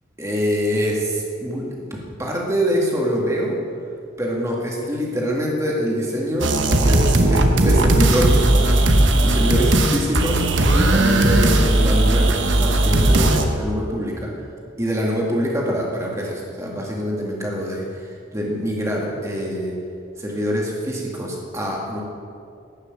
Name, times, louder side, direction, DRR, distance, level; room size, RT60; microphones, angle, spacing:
voice 1, 0.2-1.8 2.2-3.6 4.2-10.4 10.7-14.3 14.8-19.7 20.2-22.0, equal, 15° right, -2 dB, 2.1 m, -24 dB
sound 1, 6.4-13.5, right 1 dB, 70° right, 1.1 m, -17 dB
12.5 x 6.5 x 8.8 m, 2.4 s
head